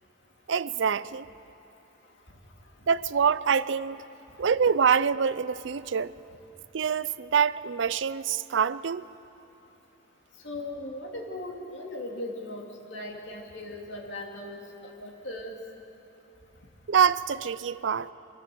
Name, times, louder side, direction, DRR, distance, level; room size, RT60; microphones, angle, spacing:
voice 1, 0.5-1.3 2.9-4.0 4.4-6.2 6.7-9.1 16.9-18.1, right 6 dB, 75° right, 0.5 m, -25 dB
voice 2, 10.4-14.6 15.0-15.6, left 1 dB, 70° left, 2.9 m, -38 dB
23.5 x 17.5 x 7.8 m
head